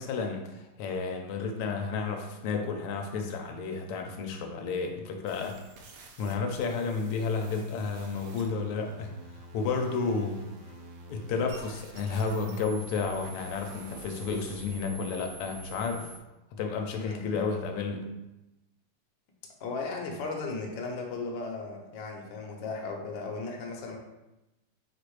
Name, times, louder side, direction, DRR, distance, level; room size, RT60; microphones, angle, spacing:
voice 1, 0.0-5.6 6.2-9.1 9.5-10.8 11.1-16.1 16.5-18.1, left 4 dB, 90° left, 3 dB, 1.6 m, -32 dB
sound 1, 5.3-16.2, right 2 dB, 85° right, 1.6 m, -48 dB
voice 2, 16.9-17.4 19.6-24.0, left 3 dB, 65° left, 0 dB, 1.4 m, -36 dB
4.5 x 2.5 x 4.6 m, 0.98 s
omnidirectional pair, 2.4 m